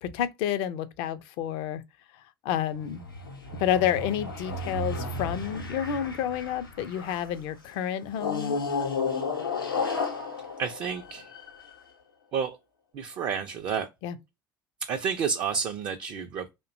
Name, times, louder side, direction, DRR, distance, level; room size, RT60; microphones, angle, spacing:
voice 1, 0.0-1.8 2.4-3.1 3.6-8.6 14.0-14.2, left 10 dB, 50° left, 0.4 m, -29 dB
sound 1, 2.7-7.4 8.1-11.7, left 4 dB, 85° left, 0.7 m, -33 dB
voice 2, 10.6-11.3 12.3-12.6 12.9-13.9 14.8-16.5, right 6 dB, 40° right, 0.4 m, -30 dB
2.5 x 2.2 x 2.5 m
figure-of-eight pair, 65°, 11 cm